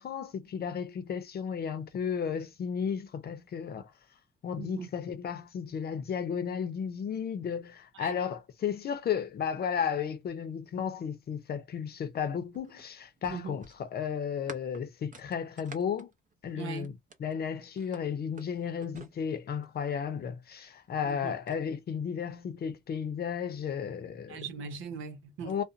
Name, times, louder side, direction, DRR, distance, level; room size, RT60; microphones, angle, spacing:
voice 1, 0.0-3.9 4.4-16.1 16.4-24.4 25.4-25.6, left 7 dB, 55° left, 0.7 m, -34 dB
voice 2, 4.6-4.9 7.9-8.2 13.3-13.6 16.6-16.9 21.0-21.3 24.3-25.6, right 6 dB, 80° right, 0.7 m, -40 dB
sound 1, 12.1-17.3 17.8-19.9 20.8-21.6, right 3 dB, 40° right, 0.7 m, -51 dB
2.5 x 2.1 x 2.7 m
cardioid pair, 90°, 20 cm